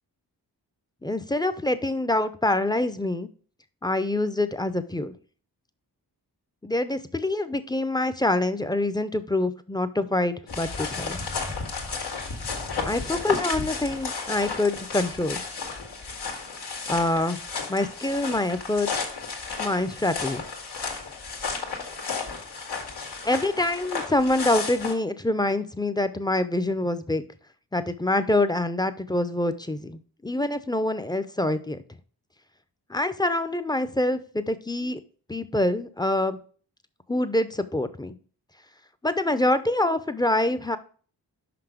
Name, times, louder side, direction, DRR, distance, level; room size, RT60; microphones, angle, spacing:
voice 1, 1.0-3.3 3.8-5.2 6.6-11.2 12.8-15.4 16.9-17.4 17.7-18.9 19.6-20.4 23.2-27.2 27.7-31.8 32.9-35.0 35.3-36.4 37.1-38.2 39.0-40.8, left 1 dB, 10° left, 11 dB, 0.6 m, -25 dB
sound 1, 10.5-24.9, left 4 dB, 85° left, 1.9 m, -33 dB
6.0 x 5.3 x 5.0 m, 0.42 s
cardioid pair, 70°, 40 cm